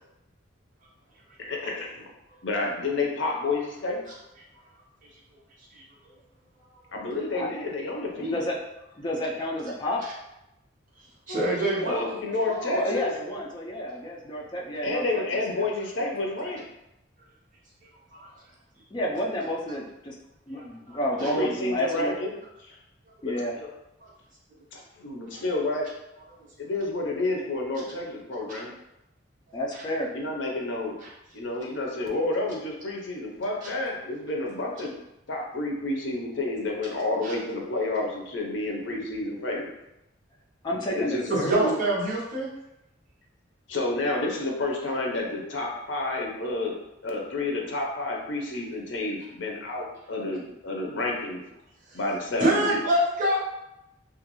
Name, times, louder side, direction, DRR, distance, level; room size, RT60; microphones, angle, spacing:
voice 1, 1.4-2.1 2.4-4.0 6.9-8.5 11.3-13.1 14.8-16.6 21.2-22.8 23.2-23.7 24.7-25.9 26.6-28.7 30.1-31.0 31.3-35.0 35.3-39.7 40.9-41.8 43.7-46.8 47.0-51.4 51.9-52.8, left 2 dB, 65° left, 0 dB, 0.6 m, -30 dB
voice 2, 8.2-8.5 9.0-10.0 12.7-15.2 15.6-15.7 18.9-20.1 20.5-22.1 23.2-23.5 29.5-30.1 40.6-41.6, equal, 25° left, -2 dB, 0.4 m, -30 dB
voice 3, 11.3-12.8 18.1-18.3 20.6-21.3 24.0-24.1 31.0-31.1 37.2-37.3 41.3-42.5 51.9-52.0 52.4-53.4, right 1 dB, 40° right, -5 dB, 0.8 m, -26 dB
2.4 x 2.3 x 2.9 m, 0.89 s
head